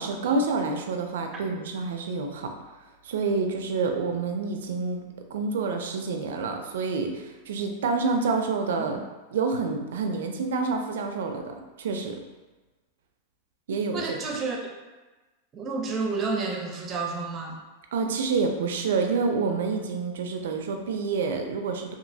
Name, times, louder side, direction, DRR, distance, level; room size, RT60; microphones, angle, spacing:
voice 1, 0.0-2.5 3.0-5.0 5.3-9.0 9.3-12.2 13.7-14.2 17.9-21.9, right 4 dB, 80° right, 4 dB, 0.4 m, -28 dB
voice 2, 13.9-14.6 15.5-17.6, right 4 dB, 25° right, 1 dB, 0.6 m, -30 dB
3.0 x 2.7 x 2.7 m, 1.2 s
supercardioid pair, 135°, 0 cm